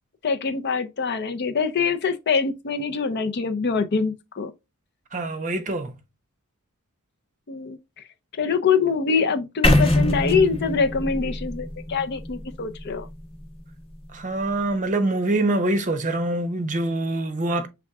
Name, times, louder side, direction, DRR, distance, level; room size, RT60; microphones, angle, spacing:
voice 1, 0.2-4.5 7.5-7.8 8.4-13.1, left 5 dB, 50° left, 0.5 m, -24 dB
voice 2, 5.1-5.9 14.1-17.7, right 2 dB, 35° right, 0.6 m, -24 dB
sound 1, 9.6-13.6, left 1 dB, 25° left, 0.8 m, -23 dB
5.8 x 3.5 x 2.3 m
head